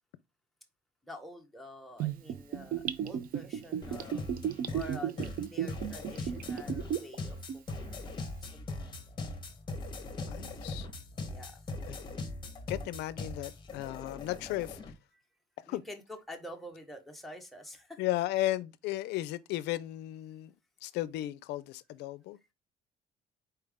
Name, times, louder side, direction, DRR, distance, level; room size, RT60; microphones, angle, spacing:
voice 1, 1.0-4.3 4.7-7.4 7.7-9.2 11.2-11.6 15.7-18.0, left 1 dB, ahead, 1.1 m, -48 dB
Gurgling / Bathtub (filling or washing), 2.0-7.1 7.5-7.6, right 9 dB, 60° right, 0.5 m, -34 dB
sound 1, 3.8-14.9, left 2 dB, 25° left, 1.2 m, -40 dB
voice 2, 10.2-10.9 11.9-12.0 12.7-14.8 15.7-15.8 18.0-20.5 20.8-22.4, left 15 dB, 85° left, 0.4 m, -35 dB
4.5 x 3.3 x 3.5 m
cardioid pair, 110°, 17 cm